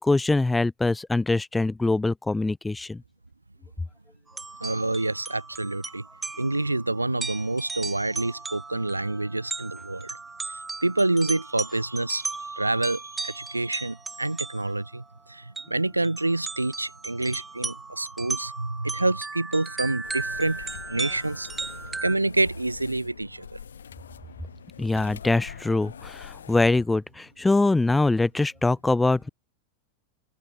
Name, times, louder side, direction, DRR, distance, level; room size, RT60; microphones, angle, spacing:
voice 1, 0.0-3.0 24.8-29.3, left 2 dB, 10° left, 0.7 m, -23 dB
sound 1, 4.3-14.9 15.6-15.7 16.0-22.2, right 3 dB, 10° right, 1.9 m, -36 dB
voice 2, 4.6-6.1 6.4-10.2 10.4-21.7 22.0-23.6, right 2 dB, 85° right, 0.4 m, -27 dB
sound 2, 20.0-26.8, left 8 dB, 70° left, 2.2 m, -44 dB
open air
figure-of-eight pair, 90°, 0 cm